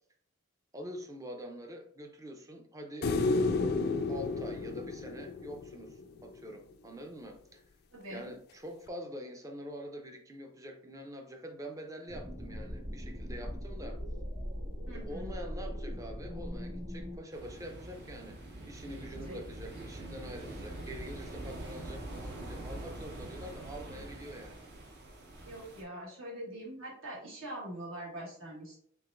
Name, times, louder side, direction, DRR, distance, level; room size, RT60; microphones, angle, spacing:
voice 1, 0.7-3.1 4.1-7.6 8.1-14.0 14.9-24.6, equal, 15° right, 0.5 m, -45 dB
sound 1, 3.0-6.3 8.9-9.0, left 3 dB, 50° left, 0.4 m, -31 dB
voice 2, 7.9-8.2 14.9-15.3 19.1-19.4 25.4-28.8, right 1 dB, 70° right, 1.6 m, -43 dB
sound 2, 12.1-17.2, equal, 30° right, 1.7 m, -40 dB
sound 3, 17.3-25.8, right 1 dB, 50° right, 0.9 m, -44 dB
4.6 x 3.7 x 2.5 m
head